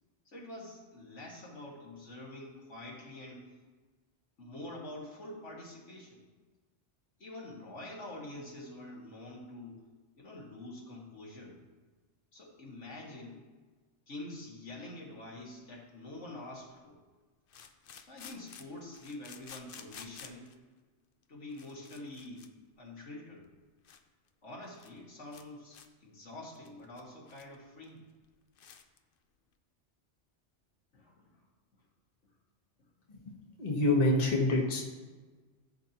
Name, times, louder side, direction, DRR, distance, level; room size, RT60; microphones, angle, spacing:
voice 1, 0.3-3.5 4.4-6.2 7.2-9.8 10.2-11.5 12.3-13.4 14.1-17.0 18.0-20.5 21.3-22.5 22.8-23.4 24.4-28.0 30.9-31.4, left 1 dB, 80° left, -4 dB, 2.2 m, -46 dB
sound 1, 15.6-15.7 17.5-20.6 21.2-21.3 21.5-22.5 22.8-22.9 23.4-23.5 23.8-24.0 24.3-24.4 24.6-25.0 25.3-25.5 25.7-25.9 26.3-27.6 27.8-27.9 28.2-28.3 28.6-29.0, left 7 dB, 55° left, 0.8 m, -52 dB
voice 2, 33.6-34.8, left 2 dB, 35° left, -2 dB, 1.3 m, -27 dB
14.0 x 7.4 x 3.0 m, 1.4 s
omnidirectional pair, 1.2 m